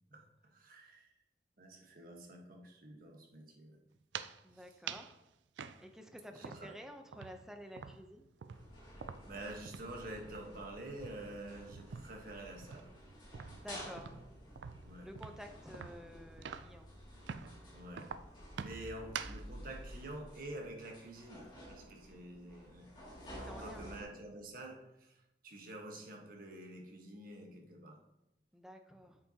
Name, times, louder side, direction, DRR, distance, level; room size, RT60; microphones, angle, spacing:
voice 1, 0.1-1.1 1.6-3.8 4.5-4.8 6.3-6.7 9.2-12.9 13.6-13.7 14.8-15.1 15.6-15.9 17.7-18.1 18.6-22.9 23.2-28.0, right 1 dB, 50° right, 1 dB, 1.3 m, -48 dB
sound 1, 4.0-4.4 4.9-5.2 5.6-6.8 7.1-10.0 10.3-10.5 10.9-12.3 12.6-16.8 17.3-17.6 18.0-19.5, right 7 dB, 85° right, 0.4 m, -46 dB
voice 2, 4.4-5.1 5.8-8.2 13.6-14.2 15.0-16.9 23.4-23.8 28.5-29.2, equal, 5° right, 5 dB, 0.6 m, -51 dB
sound 2, 8.5-24.0, equal, 25° left, 2.4 m, -52 dB
8.3 x 7.4 x 2.9 m, 0.90 s
head